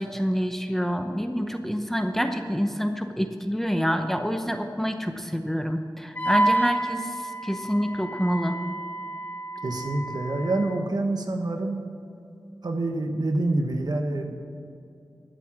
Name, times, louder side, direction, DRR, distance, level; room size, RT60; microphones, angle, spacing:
voice 1, 0.0-8.6, equal, 5° left, 6 dB, 0.8 m, -27 dB
Wind instrument woodwind instrument, 6.2-10.8, right 1 dB, 25° left, 1.2 m, -29 dB
voice 2, 9.6-11.8 12.6-14.4, right 2 dB, 65° right, 4 dB, 1.3 m, -27 dB
12.0 x 7.5 x 7.5 m, 2.5 s
wide cardioid pair, 80°, 8 cm